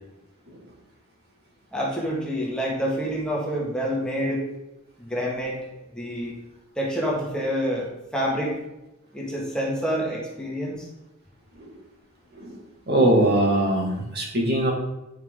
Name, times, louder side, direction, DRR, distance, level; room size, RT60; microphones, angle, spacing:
voice 1, 1.7-4.4 5.0-5.6 5.9-6.3 6.8-8.6 9.1-10.9, equal, 5° left, -4 dB, 1.7 m, -27 dB
voice 2, 12.9-14.7, right 1 dB, 50° right, -1 dB, 2.2 m, -22 dB
9.3 x 5.9 x 3.7 m, 0.95 s
head